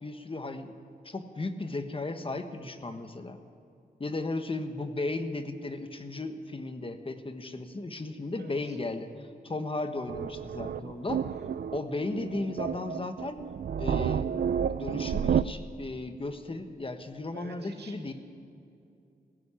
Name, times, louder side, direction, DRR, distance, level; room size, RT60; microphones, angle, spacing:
voice 1, 0.0-0.7 1.0-3.4 4.0-11.2 11.7-13.4 13.8-14.3 14.7-18.1, left 2 dB, 30° left, 8 dB, 1.3 m, -35 dB
voice 2, 8.3-8.8 11.2-11.6 17.3-18.1, right 4 dB, 85° right, 4 dB, 2.3 m, -49 dB
sound 1, 10.1-15.4, right 8 dB, 70° right, 0.5 m, -30 dB
16.5 x 16.0 x 9.9 m, 2.6 s
wide cardioid pair, 125°, 17 cm